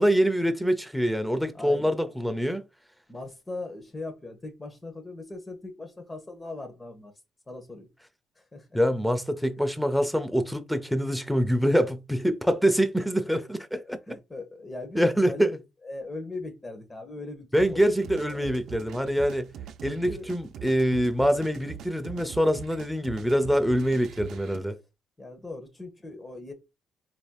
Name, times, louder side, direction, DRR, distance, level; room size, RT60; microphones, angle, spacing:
voice 1, 0.0-2.6 8.7-14.0 14.9-15.6 17.5-19.5 19.8-24.8, equal, ahead, 0.6 m, -25 dB
voice 2, 1.5-1.9 3.1-7.1 7.5-7.9 8.4-8.8 9.6-9.8 13.8-15.5 15.8-18.6 19.9-20.3 25.2-26.5, left 2 dB, 20° left, 1.1 m, -40 dB
sound 1, 17.6-24.6, right 9 dB, 75° right, 0.4 m, -43 dB
4.2 x 3.2 x 2.3 m
cardioid pair, 90°, 0 cm